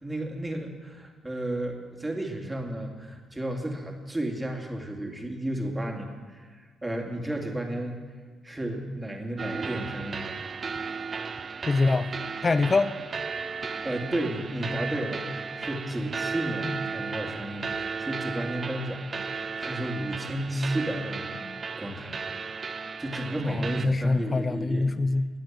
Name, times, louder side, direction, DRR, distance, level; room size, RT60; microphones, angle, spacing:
voice 1, 0.0-8.0 8.4-10.4 13.8-21.4 21.8-22.2 23.0-25.0, right 1 dB, 10° right, 2 dB, 2.4 m, -33 dB
sound 1, 9.4-23.9, right 5 dB, 40° right, 0.6 m, -35 dB
voice 2, 11.7-12.1 12.4-12.9 16.7-16.8 23.4-25.3, left 3 dB, 30° left, 13 dB, 0.5 m, -25 dB
20.0 x 7.9 x 7.4 m, 1.5 s
cardioid pair, 90°, 0 cm